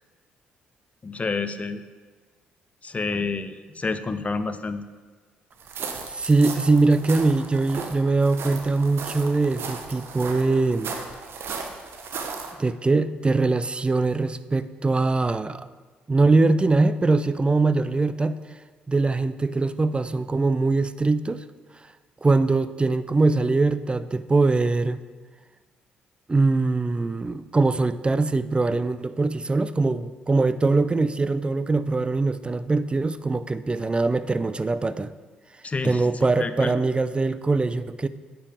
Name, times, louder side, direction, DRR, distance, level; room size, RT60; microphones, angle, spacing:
voice 1, 1.0-1.8 2.8-4.9 35.6-36.7, left 4 dB, 30° left, 11 dB, 0.6 m, -29 dB
sound 1, 5.6-12.5, right 5 dB, 55° right, 0.9 m, -36 dB
voice 2, 6.1-10.9 12.6-15.7 16.1-18.4 18.9-21.4 22.2-25.0 26.3-35.1 35.8-38.1, right 3 dB, 20° right, 14 dB, 0.4 m, -22 dB
9.6 x 6.8 x 3.4 m, 1.4 s
hypercardioid pair, 45°, 5 cm